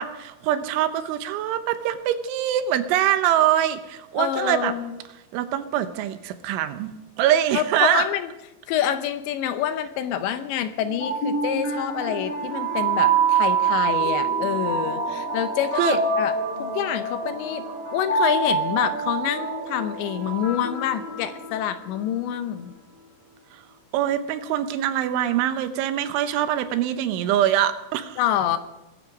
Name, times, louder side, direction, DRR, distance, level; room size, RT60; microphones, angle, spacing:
voice 1, 0.0-4.7 5.3-6.9 7.2-8.1 15.8-16.0 23.9-28.2, right 11 dB, 80° right, 10 dB, 3.3 m, -23 dB
voice 2, 4.2-4.9 7.5-8.3 8.7-17.6 17.9-22.7 28.2-28.6, left 10 dB, 80° left, 10 dB, 2.9 m, -27 dB
sound 1, 10.8-21.9, right 5 dB, 50° left, 5.5 m, -25 dB
22.0 x 11.5 x 5.2 m, 0.99 s
omnidirectional pair, 5.5 m